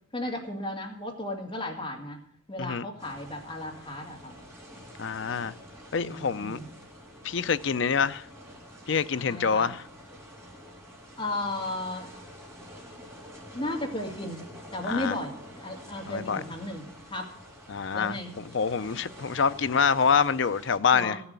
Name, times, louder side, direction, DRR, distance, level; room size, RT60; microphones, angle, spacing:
voice 1, 0.1-2.2 2.5-4.3 5.9-6.7 9.3-9.7 11.2-12.1 13.5-14.4 14.7-16.8 17.1-17.3 17.9-18.3 20.9-21.2, left 1 dB, 25° left, 2.4 m, -34 dB
sound 1, 3.0-20.8, equal, 15° right, 2.8 m, -47 dB
voice 2, 5.0-5.5 5.9-6.6 7.2-8.3 8.9-9.8 14.9-15.1 16.1-16.4 17.7-21.2, left 6 dB, 60° left, 0.5 m, -26 dB
15.0 x 7.1 x 8.2 m
head